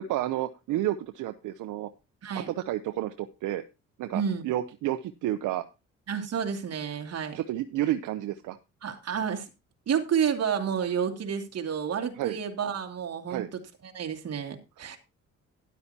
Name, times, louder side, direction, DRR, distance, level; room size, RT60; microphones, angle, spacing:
voice 1, 0.0-1.9 2.3-3.6 4.0-5.6 7.4-8.6 12.2-12.4 13.3-13.5, right 13 dB, 85° right, 10 dB, 0.7 m, -30 dB
voice 2, 2.2-2.5 4.1-4.4 6.1-7.4 8.8-9.5 9.9-15.0, right 7 dB, 55° right, 4 dB, 2.5 m, -30 dB
12.5 x 11.0 x 2.8 m, 0.28 s
cardioid pair, 90°, 30 cm